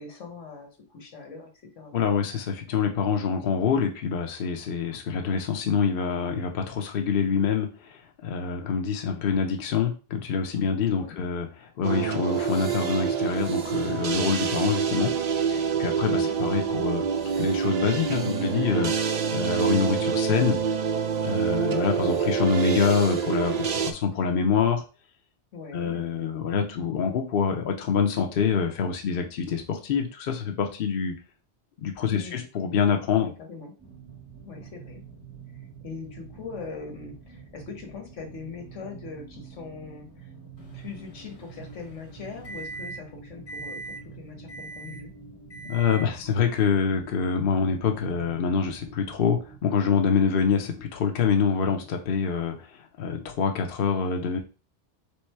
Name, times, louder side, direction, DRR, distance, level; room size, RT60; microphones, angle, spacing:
voice 1, 0.0-1.5 1.8-2.1 11.0-11.2 16.1-16.4 21.5-21.8 25.5-26.1 32.1-32.4 33.2-33.7 34.4-35.0 35.8-40.3 40.7-45.1, left 5 dB, 85° left, 3 dB, 1.4 m, -41 dB
voice 2, 1.9-11.5 11.8-15.1 15.5-17.0 17.4-18.9 19.3-20.6 21.2-24.8 25.7-31.1 31.8-33.3 45.6-54.4, left 6 dB, 55° left, 4 dB, 0.8 m, -26 dB
sound 1, 11.8-23.9, right 7 dB, 60° right, 0.4 m, -26 dB
sound 2, 33.8-49.6, right 6 dB, 5° left, 1.1 m, -47 dB
Microwave oven, 40.6-43.1 43.5-44.0 44.5-45.1 45.5-46.1, right 3 dB, 30° left, 0.9 m, -41 dB
3.6 x 3.1 x 4.5 m, 0.33 s
omnidirectional pair, 1.2 m